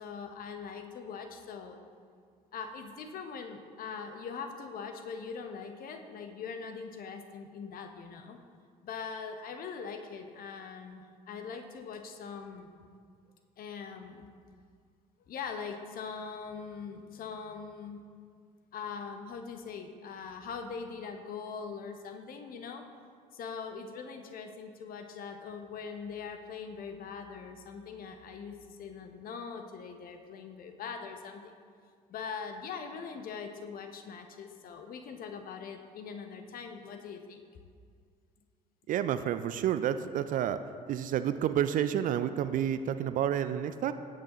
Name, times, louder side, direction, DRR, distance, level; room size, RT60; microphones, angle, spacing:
voice 1, 0.0-1.8 2.5-8.4 8.8-12.7 13.6-14.3 15.3-18.0 18.7-22.8 23.3-31.5 32.1-37.4, left 5 dB, 45° left, 6 dB, 1.1 m, -42 dB
voice 2, 38.9-40.6 40.9-43.9, right 10 dB, 40° right, 11 dB, 0.5 m, -29 dB
16.5 x 8.6 x 3.1 m, 2.1 s
figure-of-eight pair, 60°, 21 cm